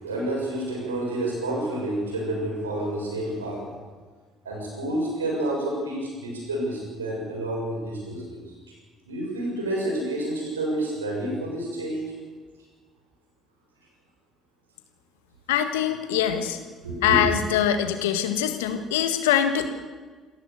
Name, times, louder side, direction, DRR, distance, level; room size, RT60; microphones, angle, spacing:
voice 1, 0.0-3.7 4.4-8.4 9.1-12.1 16.8-17.2, right 1 dB, 85° right, -2 dB, 6.6 m, -29 dB
voice 2, 15.5-16.6 17.0-19.7, left 10 dB, 75° left, 8 dB, 1.7 m, -23 dB
27.5 x 14.0 x 6.8 m, 1.4 s
figure-of-eight pair, 50°, 0 cm